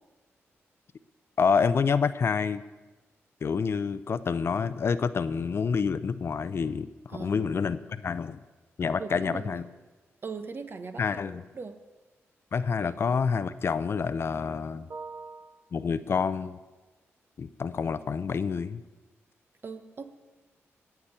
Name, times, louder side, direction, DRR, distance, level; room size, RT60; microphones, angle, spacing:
voice 1, 1.4-2.6 3.4-8.4 8.8-9.6 11.0-11.4 12.5-14.9 15.7-16.6 17.4-18.8, left 5 dB, 55° left, 14 dB, 0.6 m, -28 dB
voice 2, 7.1-7.5 9.0-9.6 10.2-11.8 14.9-15.6 19.6-20.0, right 4 dB, 45° right, 8 dB, 1.2 m, -40 dB
17.0 x 5.9 x 8.3 m, 1.2 s
cardioid pair, 80°, 5 cm